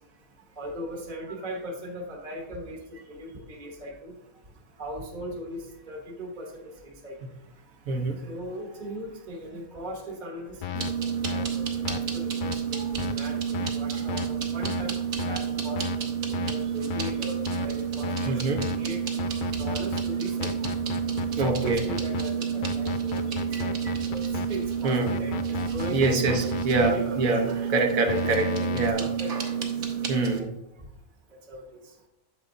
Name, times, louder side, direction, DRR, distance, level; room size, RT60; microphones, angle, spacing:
voice 1, 0.6-4.2 4.8-7.2 8.2-10.6 11.0-15.9 16.4-19.0 19.6-20.5 21.4-27.3 28.0-29.7 30.1-30.4 31.5-32.1, equal, 35° right, 0 dB, 1.1 m, -38 dB
voice 2, 7.9-8.2 18.2-18.6 21.4-21.8 23.5-23.6 24.8-25.1 25.9-28.5 28.7-29.0 30.1-30.5, right 3 dB, 80° right, 3 dB, 1.4 m, -25 dB
sound 1, 10.6-10.9 11.2-11.5 11.8-12.0 12.4-12.6 13.0-13.1 13.5-13.7 14.1-14.3 14.6-14.8 15.2-15.4 15.8-16.0 16.3-16.5 16.9-17.1 17.5-17.7 18.0-18.3 18.6-18.8 19.2-20.0 20.4-22.2 22.6-24.5 25.1-26.9 28.1-28.9, left 11 dB, 85° left, 0.4 m, -33 dB
sound 2, 10.7-30.4, right 8 dB, 65° right, 1.3 m, -30 dB
8.9 x 6.9 x 2.6 m, 0.93 s
omnidirectional pair, 1.4 m